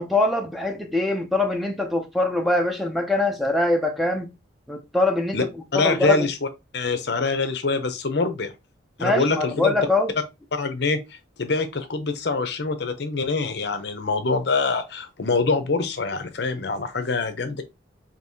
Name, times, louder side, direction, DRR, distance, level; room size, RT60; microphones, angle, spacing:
voice 1, 0.0-4.3 4.7-5.4 5.7-6.3 9.0-10.1, left 2 dB, ahead, 0.5 m, -23 dB
voice 2, 5.7-6.4 6.7-8.5 9.0-9.7 10.5-17.6, left 3 dB, 55° left, 0.6 m, -25 dB
5.3 x 2.7 x 2.7 m
head